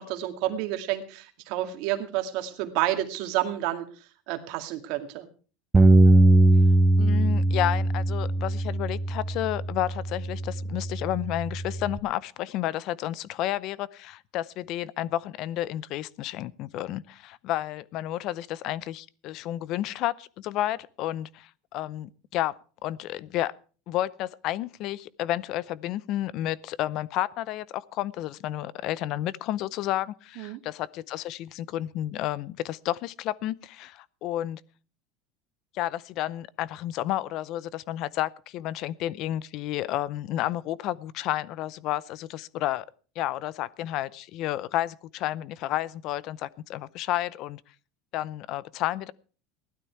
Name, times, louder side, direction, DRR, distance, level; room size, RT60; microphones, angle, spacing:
voice 1, 0.0-5.3 30.4-30.6, right 13 dB, 65° right, 2.2 m, -30 dB
Bass guitar, 5.7-12.0, right 2 dB, 15° right, 0.6 m, -21 dB
voice 2, 7.0-22.5 22.8-23.5 23.9-34.6 35.7-42.9 43.2-47.6 48.1-49.1, left 14 dB, 50° left, 0.6 m, -31 dB
16.5 x 12.0 x 4.6 m
supercardioid pair, 135°, 0 cm